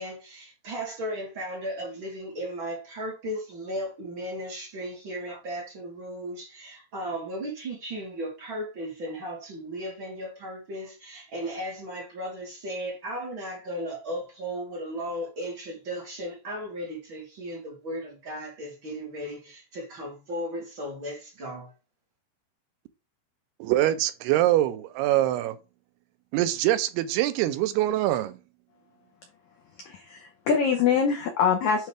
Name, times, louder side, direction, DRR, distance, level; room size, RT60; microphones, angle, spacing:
voice 1, 0.0-21.7, equal, 35° right, 2.6 m, -36 dB
voice 2, 23.6-25.6 26.3-28.4, right 14 dB, 85° right, 2.6 m, -24 dB
voice 3, 29.8-31.9, left 6 dB, 80° left, 1.7 m, -24 dB
9.4 x 3.6 x 3.4 m
omnidirectional pair, 4.6 m